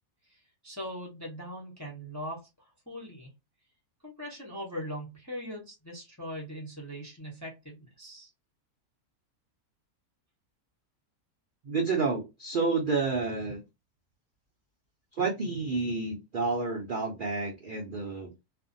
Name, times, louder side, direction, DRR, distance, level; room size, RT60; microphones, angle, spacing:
voice 1, 0.3-3.3 4.0-8.3, equal, 20° left, 0.4 m, -41 dB
voice 2, 11.6-13.6 15.2-18.3, right 4 dB, 75° right, 0.4 m, -30 dB
2.5 x 2.1 x 2.5 m
omnidirectional pair, 1.6 m